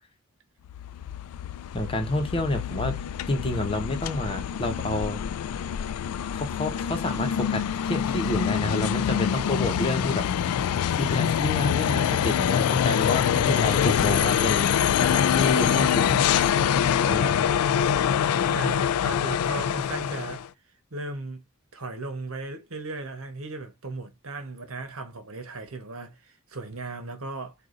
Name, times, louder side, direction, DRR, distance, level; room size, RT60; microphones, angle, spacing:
sound 1, 0.7-20.5, left 8 dB, 90° left, 0.3 m, -25 dB
voice 1, 1.7-2.9 3.3-5.2 6.3-14.7 15.0-16.3 17.1-17.4, left 1 dB, 25° left, 1.0 m, -29 dB
voice 2, 13.3-14.6 18.4-20.5 20.9-21.4 21.7-27.5, right 3 dB, 65° right, 1.2 m, -37 dB
4.8 x 2.6 x 3.8 m
head